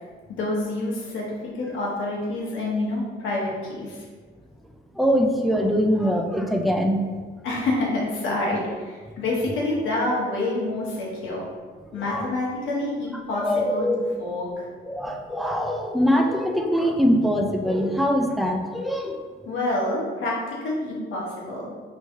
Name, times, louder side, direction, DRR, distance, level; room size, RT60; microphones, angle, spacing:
voice 1, 0.3-4.0 7.4-11.5 11.9-13.9 14.2-14.7 19.4-21.7, left 2 dB, 80° left, -4 dB, 1.1 m, -27 dB
voice 2, 4.9-7.0 11.9-12.3 13.4-14.1 14.9-19.2, equal, ahead, 2 dB, 0.4 m, -23 dB
3.1 x 2.7 x 3.5 m, 1.5 s
cardioid pair, 90°, 20 cm